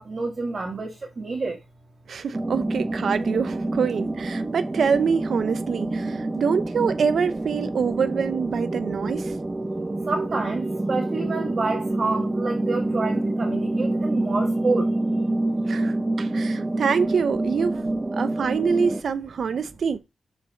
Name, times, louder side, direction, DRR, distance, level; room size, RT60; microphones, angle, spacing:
voice 1, 0.0-1.6 10.1-14.9, right 3 dB, 40° right, 1.4 m, -28 dB
voice 2, 2.1-9.3 15.7-17.9 18.1-20.0, right 6 dB, 65° right, 0.6 m, -25 dB
sound 1, 2.3-19.0, right 2 dB, 20° right, 0.6 m, -27 dB
6.9 x 4.8 x 4.0 m
wide cardioid pair, 155°, 0 cm